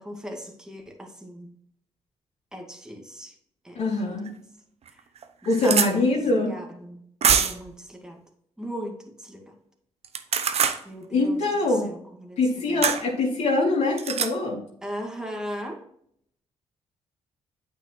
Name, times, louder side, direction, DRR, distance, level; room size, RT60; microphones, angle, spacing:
voice 1, 0.0-1.5 2.5-3.4 3.6-4.3 4.9-5.0 5.4-7.0 7.3-8.2 8.6-9.5 10.8-12.4 12.7-12.9 14.8-15.8, equal, 5° right, 1 dB, 2.0 m, -38 dB
voice 2, 3.7-4.3 5.5-6.5 11.1-11.9 12.4-14.6, left 2 dB, 65° left, -5 dB, 2.8 m, -23 dB
sound 1, 4.3-4.4 4.9-5.0 5.2-5.9 7.2-7.7 10.0-10.8 12.8-13.0 14.0-14.3, right 7 dB, 60° right, 0.9 m, -23 dB
8.8 x 5.5 x 3.1 m, 0.69 s
supercardioid pair, 60°, 12 cm